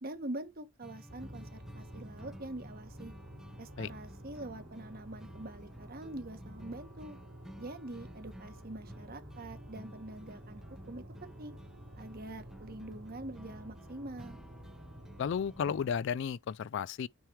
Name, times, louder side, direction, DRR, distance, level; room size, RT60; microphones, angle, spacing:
voice 1, 0.0-3.1 3.6-7.2 7.6-11.6 12.0-14.4, right 1 dB, 45° right, 1.3 m, -44 dB
sound 1, 0.8-15.9, equal, ahead, 0.7 m, -54 dB
sound 2, 1.1-16.3, right 1 dB, 75° right, 2.9 m, -51 dB
voice 2, 15.2-17.1, left 7 dB, 60° left, 0.3 m, -33 dB
9.0 x 3.2 x 4.6 m
head